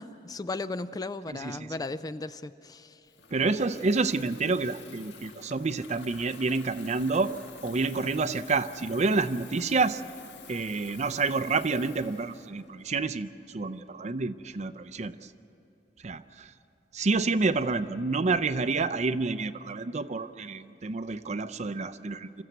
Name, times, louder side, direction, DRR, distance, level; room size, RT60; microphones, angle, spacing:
voice 1, 0.0-3.0, left 3 dB, 20° left, 13 dB, 0.4 m, -36 dB
voice 2, 1.3-1.7 3.3-10.0 10.5-15.3 16.0-16.5 16.9-22.4, right 3 dB, 40° right, 13 dB, 0.5 m, -29 dB
Water tap faucet / Fill (with liquid), 3.0-13.3, left 5 dB, 85° left, 1.5 m, -50 dB
26.5 x 14.5 x 8.1 m, 2.9 s
head